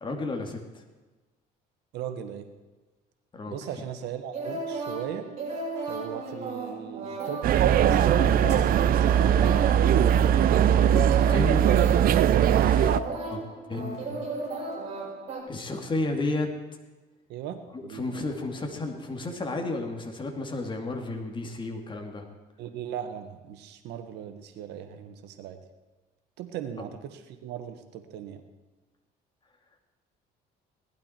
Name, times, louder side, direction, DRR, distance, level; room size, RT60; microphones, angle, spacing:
voice 1, 0.0-0.8 3.3-3.6 10.9-11.7 12.5-13.0 13.3-13.4 13.7-14.2 15.5-16.5 17.7-22.2, left 2 dB, 30° left, 3 dB, 2.4 m, -32 dB
voice 2, 1.9-2.5 3.5-5.3 5.9-8.9 12.8-13.4 17.3-18.3 22.6-25.6 26.4-28.4, right 9 dB, 85° right, 7 dB, 1.4 m, -38 dB
sound 1, 4.3-15.4, right 2 dB, 45° right, 6.0 m, -35 dB
sound 2, 7.4-13.0, right 9 dB, 60° right, 0.6 m, -20 dB
18.0 x 12.0 x 4.5 m, 1.2 s
cardioid pair, 110°, 17 cm